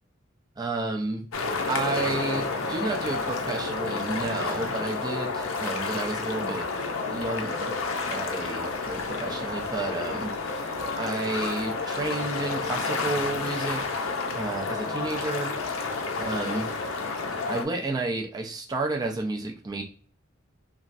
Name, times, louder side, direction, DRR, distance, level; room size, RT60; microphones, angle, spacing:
voice 1, 0.6-1.3 1.7-6.7 7.1-7.7 8.1-10.3 10.6-14.0 14.3-15.6 16.2-16.7 17.5-19.8, right 3 dB, 20° right, 1 dB, 0.3 m, -31 dB
sound 1, 1.3-17.6, left 4 dB, 85° left, 0.5 m, -30 dB
3.0 x 2.3 x 2.5 m, 0.43 s
head